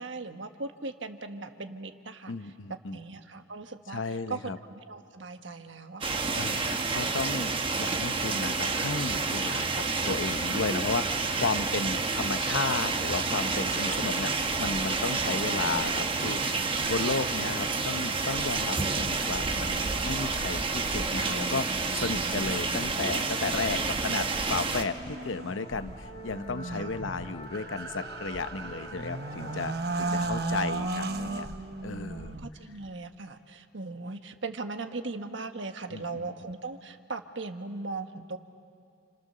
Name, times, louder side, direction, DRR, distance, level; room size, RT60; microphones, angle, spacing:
voice 1, 0.0-6.3 11.8-12.1 15.2-15.3 16.5-16.8 17.4-17.5 22.5-22.6 23.5-23.6 26.7-27.0 28.6-28.8 29.9-30.3 31.9-38.4, right 3 dB, 70° right, 7 dB, 1.3 m, -39 dB
voice 2, 2.3-3.0 3.9-4.6 6.3-16.6 16.8-31.5 31.8-32.3 35.9-36.2, left 4 dB, 80° left, 11 dB, 0.9 m, -34 dB
sound 1, 6.0-24.8, right 4 dB, 25° right, 1.1 m, -29 dB
sound 2, 13.8-32.5, right 2 dB, 55° right, 1.0 m, -38 dB
Musical instrument, 23.6-29.6, equal, 30° left, 2.2 m, -47 dB
29.5 x 27.0 x 6.8 m, 2.4 s
head